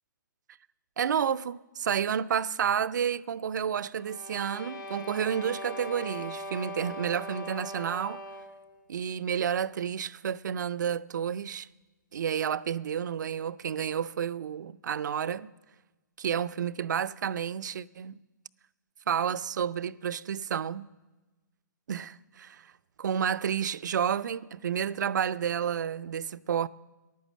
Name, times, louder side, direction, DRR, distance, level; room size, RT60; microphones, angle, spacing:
voice 1, 1.0-8.2 8.9-11.7 12.1-15.5 16.2-18.2 19.1-20.9 21.9-22.7 23.0-26.7, right 8 dB, 65° right, 0.5 m, -30 dB
sound 1, 3.9-8.7, equal, 90° left, 2.6 m, -40 dB
15.0 x 11.5 x 7.4 m
hypercardioid pair, 130°, 11 cm